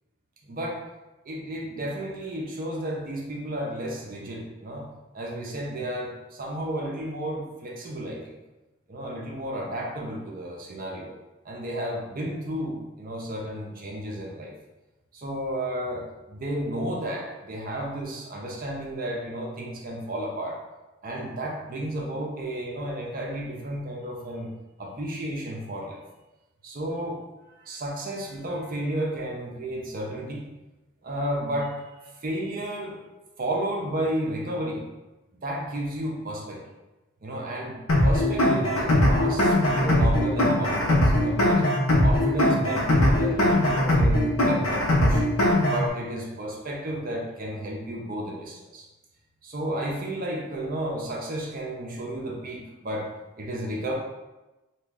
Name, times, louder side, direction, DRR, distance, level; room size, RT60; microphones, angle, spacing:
voice 1, 0.4-0.8 1.2-4.9 5.1-8.4 8.9-11.1 11.4-14.5 15.1-20.6 21.0-24.5 24.8-26.0 26.6-30.5 31.0-33.0 33.4-34.9 35.4-36.7 37.2-41.7 42.0-45.2 45.6-48.9 49.4-53.1 53.4-53.9, right 1 dB, 40° right, -2 dB, 0.5 m, -32 dB
sound 1, 37.9-45.9, left 1 dB, 75° left, 0.7 m, -21 dB
3.0 x 2.3 x 3.6 m, 1.1 s
head